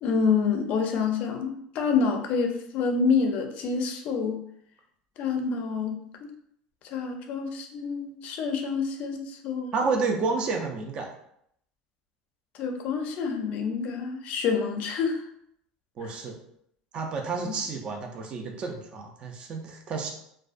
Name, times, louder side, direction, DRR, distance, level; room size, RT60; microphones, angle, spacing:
voice 1, 0.0-4.4 5.2-6.0 6.8-9.7 12.6-15.2 17.4-17.5, left 5 dB, 50° left, 4 dB, 0.4 m, -27 dB
voice 2, 9.7-11.1 16.0-16.4 16.9-20.1, right 4 dB, 35° right, 2 dB, 0.4 m, -30 dB
2.4 x 2.1 x 2.4 m, 0.72 s
cardioid pair, 140°, 3 cm